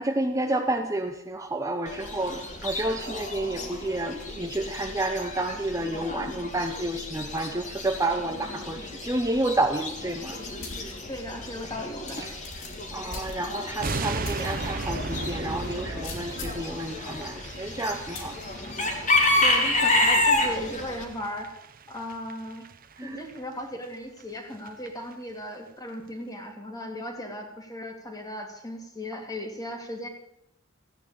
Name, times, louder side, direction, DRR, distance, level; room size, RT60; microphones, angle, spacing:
voice 1, 0.0-10.4 12.2-12.3 12.9-18.4 19.8-19.9 23.0-23.2, right 1 dB, 15° right, 5 dB, 0.9 m, -30 dB
Chicken rooster / Bird, 1.9-21.0, left 2 dB, 40° left, 2.8 m, -30 dB
sound 1, 10.6-10.9 11.4-11.5 12.1-13.7 14.2-14.5 14.9-15.0 16.0-16.7 18.1-18.4, left 2 dB, 70° left, 4.1 m, -39 dB
voice 2, 11.1-12.2 19.4-21.6 21.9-22.7 23.0-30.1, equal, 20° left, 3 dB, 2.7 m, -36 dB
sound 2, 13.8-23.0 23.2-23.4 23.8-23.9 24.2-24.3 24.5-24.9 25.1-25.2, right 3 dB, 45° right, 0.8 m, -37 dB
15.5 x 9.7 x 8.7 m, 0.77 s
head